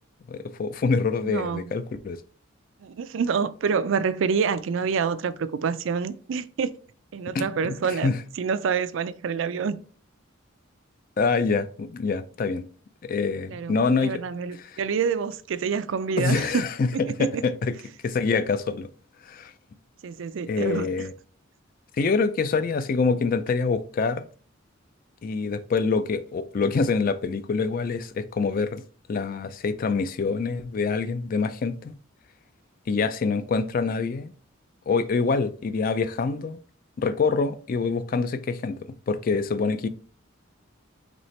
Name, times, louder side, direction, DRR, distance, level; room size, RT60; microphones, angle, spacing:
voice 1, 0.3-2.2 7.3-8.2 11.2-12.6 13.0-14.2 14.5-14.8 16.2-17.7 18.0-18.9 19.3-19.5 20.5-21.1 22.0-24.2 25.2-28.8 29.1-31.9 32.9-34.3 34.9-36.6 37.0-38.8 39.1-39.9, left 4 dB, 40° left, 0.3 m, -25 dB
voice 2, 1.2-1.7 2.8-6.7 7.1-9.7 13.5-16.6 16.9-17.4 20.0-20.9, right 6 dB, 65° right, 0.4 m, -27 dB
4.2 x 3.1 x 3.1 m
head